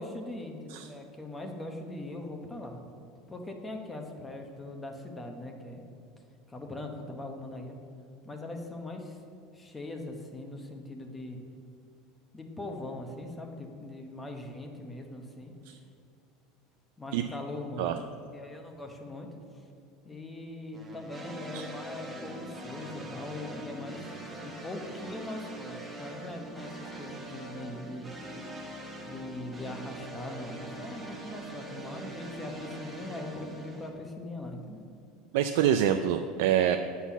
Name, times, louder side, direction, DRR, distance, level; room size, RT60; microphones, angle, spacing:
voice 1, 0.0-2.8 3.3-5.8 6.5-7.7 8.2-9.2 9.5-11.4 12.3-15.5 17.0-18.0 18.3-19.3 20.0-24.1 24.4-28.1 29.0-34.8, left 2 dB, 10° left, 3 dB, 0.9 m, -41 dB
sound 1, 20.7-33.9, right 1 dB, 10° right, 1.3 m, -42 dB
voice 2, 35.3-36.8, right 10 dB, 75° right, 7 dB, 0.4 m, -25 dB
8.1 x 5.7 x 7.1 m, 2.5 s
supercardioid pair, 155°, 0 cm